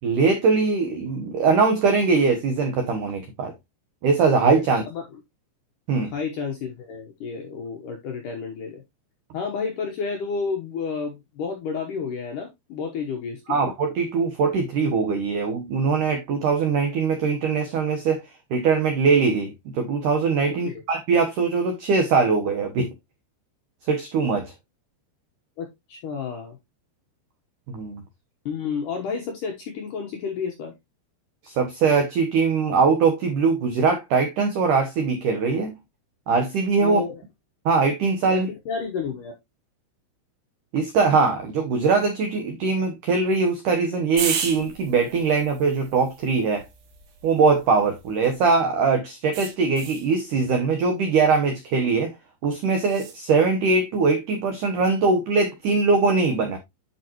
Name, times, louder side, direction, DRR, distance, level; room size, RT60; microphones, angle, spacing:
voice 1, 0.0-3.5 4.0-4.8 5.9-6.1 13.5-18.2 18.5-22.9 23.9-24.5 27.7-28.0 31.4-35.8 36.3-37.0 37.6-38.5 40.7-46.6 47.2-52.1 52.4-56.6, right 4 dB, 85° right, 1.8 m, -21 dB
voice 2, 6.1-8.8 9.3-13.6 20.6-20.8 25.6-26.6 28.5-30.7 36.8-37.2 38.3-39.3, left 5 dB, 75° left, 1.9 m, -31 dB
sound 1, 44.2-48.6 49.3-50.1 52.8-53.2, right 6 dB, 60° right, 3.3 m, -34 dB
9.8 x 5.4 x 2.9 m
omnidirectional pair, 5.3 m